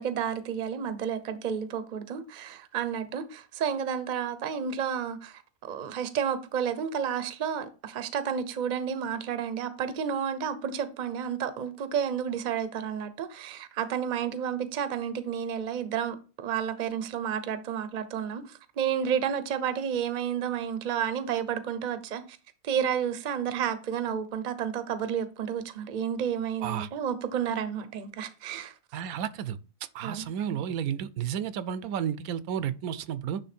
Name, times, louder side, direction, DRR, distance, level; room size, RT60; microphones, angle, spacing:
voice 1, 0.0-22.2 22.6-28.7 30.0-30.6, right 8 dB, 45° right, 0.6 m, -31 dB
voice 2, 28.9-29.6 29.9-33.4, right 9 dB, 80° right, 1.1 m, -32 dB
9.9 x 3.4 x 4.3 m
omnidirectional pair, 1.5 m